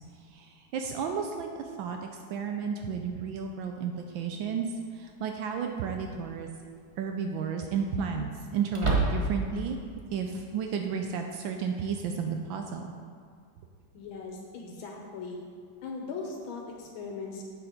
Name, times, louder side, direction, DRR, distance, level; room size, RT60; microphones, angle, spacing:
voice 1, 0.1-6.5 7.0-9.8 10.1-12.9, right 6 dB, 80° right, 4 dB, 1.3 m, -33 dB
sound 1, 4.1-4.2 6.0-6.4 6.8-6.9 8.7-9.6, right 3 dB, 30° right, 0.6 m, -28 dB
voice 2, 13.9-15.4 15.8-17.4, left 4 dB, 90° left, -1 dB, 1.7 m, -39 dB
7.8 x 6.7 x 5.0 m, 2.2 s
omnidirectional pair, 2.2 m